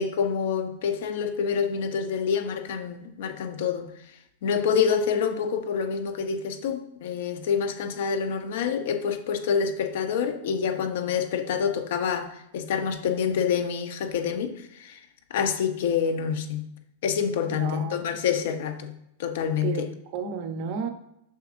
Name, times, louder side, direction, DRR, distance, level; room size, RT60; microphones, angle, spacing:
voice 1, 0.0-3.9 4.4-15.0 15.3-16.7 17.0-18.9 19.2-19.9, left 7 dB, 60° left, 0.7 m, -27 dB
voice 2, 17.5-17.9 19.6-20.9, right 6 dB, 40° right, 0.7 m, -32 dB
6.4 x 6.2 x 2.5 m
supercardioid pair, 170°, 0 cm